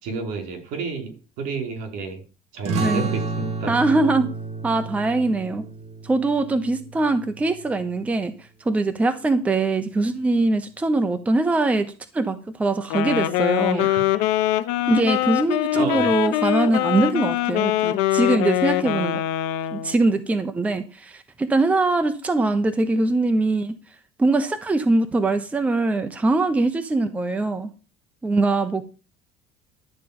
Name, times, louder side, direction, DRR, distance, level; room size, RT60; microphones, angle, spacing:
voice 1, 0.0-2.2 2.5-3.7 13.7-14.0 15.7-16.1, right 4 dB, 70° right, 3 dB, 4.8 m, -31 dB
sound 1, 2.6-7.8, right 3 dB, 50° right, 2.7 m, -31 dB
voice 2, 3.7-4.3 4.6-5.6 6.0-13.9 14.9-19.2 19.7-23.8 24.2-27.7 28.2-28.8, right 2 dB, 10° right, 8 dB, 0.8 m, -22 dB
Wind instrument woodwind instrument, 12.8-20.0, left 14 dB, 80° left, 1.1 m, -23 dB
12.0 x 5.1 x 8.7 m, 0.34 s
cardioid pair, 160°, 14 cm